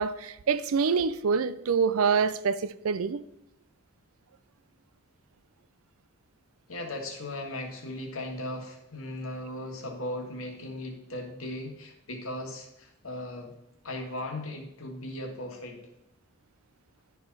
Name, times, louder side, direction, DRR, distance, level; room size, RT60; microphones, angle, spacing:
voice 1, 0.0-3.2, right 5 dB, 80° right, 0.4 m, -26 dB
voice 2, 6.7-13.5 13.8-15.8, left 1 dB, 75° left, 1.6 m, -37 dB
11.0 x 4.7 x 4.1 m
head